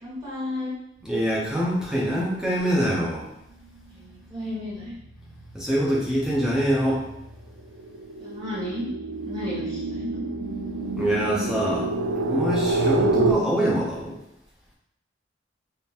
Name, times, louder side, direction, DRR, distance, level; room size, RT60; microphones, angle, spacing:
voice 1, 0.0-0.7 3.9-5.0 8.2-8.9 9.3-10.2, left 1 dB, 25° right, -9 dB, 1.4 m, -33 dB
voice 2, 1.0-3.3 5.5-7.0 11.0-11.9 12.2-14.2, equal, 5° right, -5 dB, 0.6 m, -24 dB
sound 1, 3.7-4.0 4.4-13.3, right 2 dB, 70° right, 0.4 m, -28 dB
3.6 x 2.6 x 2.8 m, 0.84 s
head